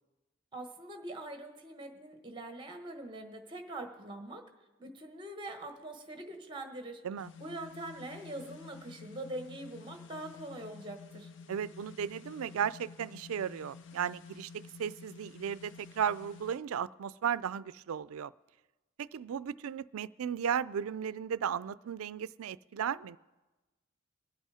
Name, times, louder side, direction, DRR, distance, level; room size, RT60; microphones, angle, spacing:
voice 1, 0.5-4.4 4.8-7.0 7.4-11.3, right 1 dB, 20° right, 6 dB, 1.2 m, -43 dB
sound 1, 7.2-16.6, left 5 dB, 60° left, 0.5 m, -51 dB
voice 2, 11.5-18.3 19.0-23.2, right 8 dB, 85° right, 18 dB, 0.4 m, -35 dB
23.5 x 8.3 x 4.9 m, 1.1 s
head